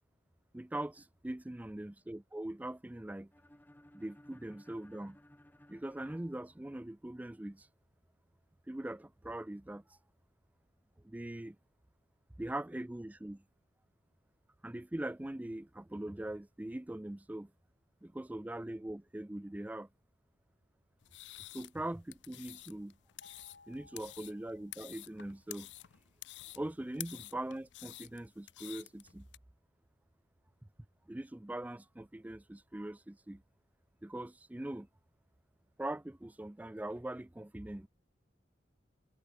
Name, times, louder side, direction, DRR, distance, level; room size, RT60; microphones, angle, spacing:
voice 1, 0.5-3.3 3.9-5.2 5.7-7.7 8.7-10.0 11.0-11.6 12.4-13.4 14.6-17.5 18.0-19.9 21.5-22.9 23.7-25.7 26.6-29.3 31.1-33.4 34.0-34.9 35.8-37.9, right 1 dB, 10° right, 0.4 m, -42 dB
sound 1, 3.3-7.2, left 1 dB, 10° left, 1.9 m, -61 dB
sound 2, 21.0-29.4, left 17 dB, 90° left, 0.6 m, -50 dB
sound 3, 23.2-25.5, left 3 dB, 70° left, 3.5 m, -62 dB
head